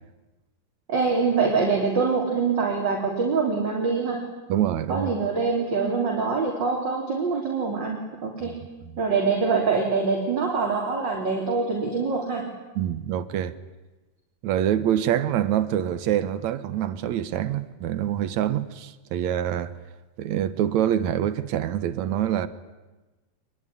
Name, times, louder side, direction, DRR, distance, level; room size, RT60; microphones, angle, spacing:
voice 1, 0.9-4.2 4.9-8.6 9.0-12.5, right 4 dB, 35° right, 4.0 m, -24 dB
voice 2, 4.5-5.1 8.4-8.6 12.8-13.5 14.4-19.7 20.2-22.5, right 10 dB, 75° right, 2.3 m, -25 dB
25.0 x 22.0 x 9.9 m
omnidirectional pair, 3.5 m